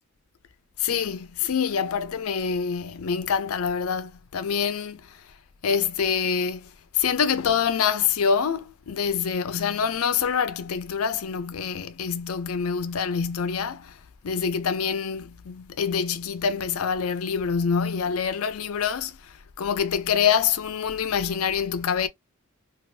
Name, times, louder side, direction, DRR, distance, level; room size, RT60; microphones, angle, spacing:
voice 1, 0.8-5.2 5.6-14.0 14.2-22.1, left 6 dB, 75° left, 0.5 m, -26 dB
3.3 x 2.5 x 2.4 m
head